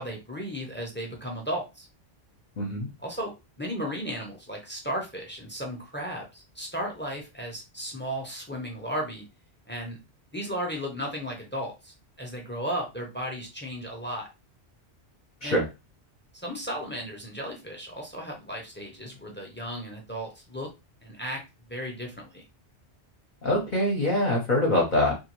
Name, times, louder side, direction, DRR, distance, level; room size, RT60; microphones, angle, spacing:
voice 1, 0.0-1.9 3.0-3.3 3.6-9.2 9.7-10.0 10.3-14.3 15.4-15.6 16.4-20.7 21.0-21.4 21.7-22.4, equal, 15° left, 0 dB, 0.5 m, -35 dB
voice 2, 2.6-2.9 15.4-15.7 23.4-25.2, left 1 dB, 50° left, -2 dB, 0.7 m, -24 dB
2.6 x 2.4 x 2.9 m, 0.26 s
omnidirectional pair, 1.1 m